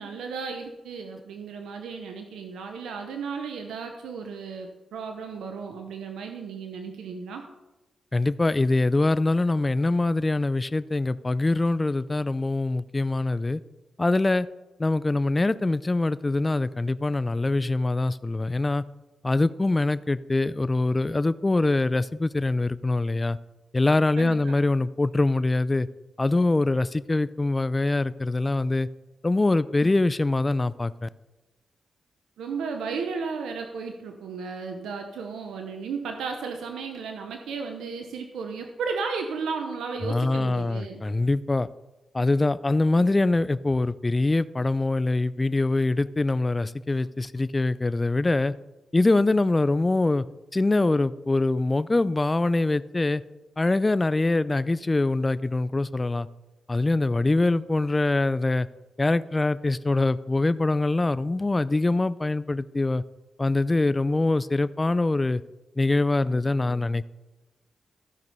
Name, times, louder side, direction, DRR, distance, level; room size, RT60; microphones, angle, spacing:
voice 1, 0.0-7.4 24.2-24.6 32.4-41.0, right 5 dB, 85° right, 4 dB, 0.8 m, -34 dB
voice 2, 8.1-13.6 14.0-14.5 14.8-18.8 19.2-23.4 23.7-25.9 26.2-28.9 29.2-31.1 40.0-41.7 42.1-48.5 48.9-50.2 50.5-53.2 53.6-56.3 56.7-58.7 59.0-63.0 63.4-65.4 65.8-67.0, left 2 dB, 25° left, 17 dB, 0.5 m, -24 dB
15.0 x 5.1 x 5.4 m, 1.1 s
supercardioid pair, 50°, 0 cm